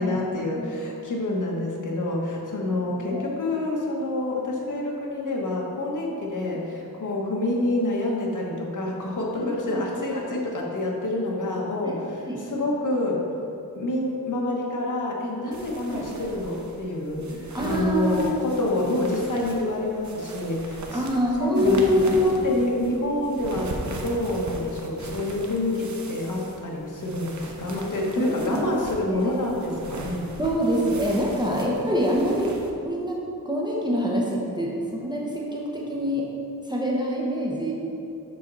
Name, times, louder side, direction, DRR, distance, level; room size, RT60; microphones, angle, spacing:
voice 1, 0.0-13.2 13.7-20.9 21.4-30.3, left 2 dB, 55° left, -2 dB, 1.2 m, -27 dB
voice 2, 2.8-3.2 6.5-6.6 9.3-9.8 11.8-11.9 12.2-12.4 15.8-16.1 17.5-18.4 20.9-22.2 28.2-28.6 28.9-29.4 30.4-32.5 32.8-33.2 33.4-36.3 36.6-37.7, equal, 10° right, -4 dB, 0.9 m, -26 dB
sound 1, 15.5-32.7, right 2 dB, 50° right, 0.8 m, -39 dB
7.5 x 5.8 x 4.0 m, 2.7 s
wide cardioid pair, 120°, 37 cm